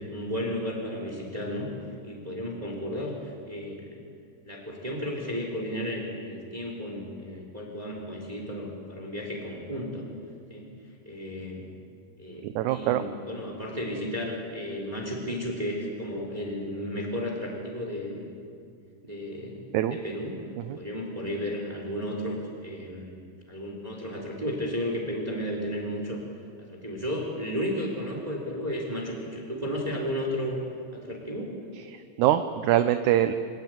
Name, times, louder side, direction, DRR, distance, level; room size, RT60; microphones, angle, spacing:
voice 1, 0.0-1.7 2.0-4.0 4.5-10.1 10.5-10.7 11.1-11.7 12.2-18.3 19.0-20.4 20.8-23.2 23.5-26.2 26.6-30.6 30.9-31.5, equal, 10° right, 1 dB, 3.5 m, -33 dB
voice 2, 12.4-13.0 19.7-20.0 20.7-20.8 31.9-33.3, right 12 dB, 75° right, 9 dB, 2.0 m, -24 dB
25.5 x 17.5 x 9.2 m, 2.4 s
omnidirectional pair, 3.8 m